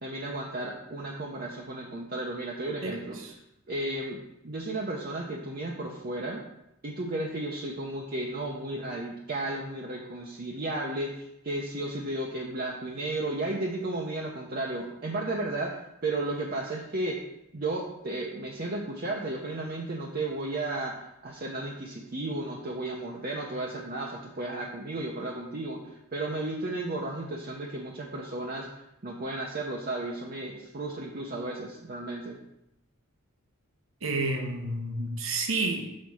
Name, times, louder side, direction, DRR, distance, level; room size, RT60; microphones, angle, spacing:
voice 1, 0.0-3.2 3.7-6.4 6.8-17.2 17.5-28.7 29.0-32.4, right 2 dB, 45° right, -1 dB, 0.8 m, -34 dB
voice 2, 2.8-3.3 34.0-35.9, right 2 dB, 70° right, 3 dB, 1.0 m, -30 dB
6.5 x 4.1 x 6.2 m, 0.86 s
head